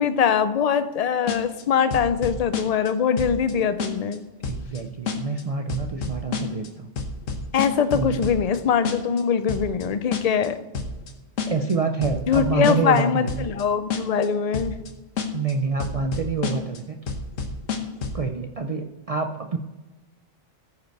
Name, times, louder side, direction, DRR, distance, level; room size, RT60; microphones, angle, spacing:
voice 1, 0.0-4.2 7.5-10.6 12.3-14.8, left 7 dB, 50° left, 11 dB, 0.4 m, -22 dB
sound 1, 1.3-1.6 1.9-2.9 3.2-3.5 3.8-4.2 4.4-4.8 5.1-5.4 5.7-6.7 7.0-8.6 8.8-9.2 9.5-9.8 10.1-10.5 10.7-11.1 11.4-11.7 12.0-13.0 13.3-13.6 13.9-14.3 14.5-14.9 15.2-15.5 15.8-16.8 17.1-18.2, left 5 dB, 85° left, 1.4 m, -29 dB
voice 2, 4.5-6.9 7.9-8.2 11.5-13.5 15.3-17.0 18.1-19.6, right 4 dB, 60° right, 4 dB, 0.4 m, -27 dB
14.5 x 5.2 x 4.6 m, 1.1 s
omnidirectional pair, 1.3 m